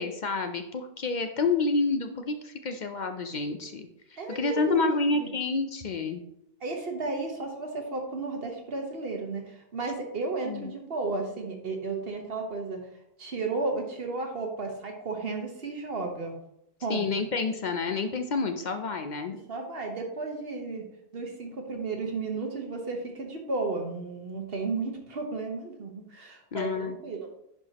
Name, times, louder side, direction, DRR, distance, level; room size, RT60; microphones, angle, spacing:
voice 1, 0.0-3.9 4.3-6.2 10.4-10.7 16.9-19.4 26.5-27.0, left 4 dB, 55° left, 7 dB, 0.6 m, -29 dB
voice 2, 4.2-5.3 6.6-12.8 13.2-16.3 16.8-17.1 19.5-20.8 21.1-27.3, right 3 dB, 70° right, 2 dB, 1.4 m, -33 dB
10.5 x 4.6 x 2.9 m, 0.79 s
omnidirectional pair, 1.0 m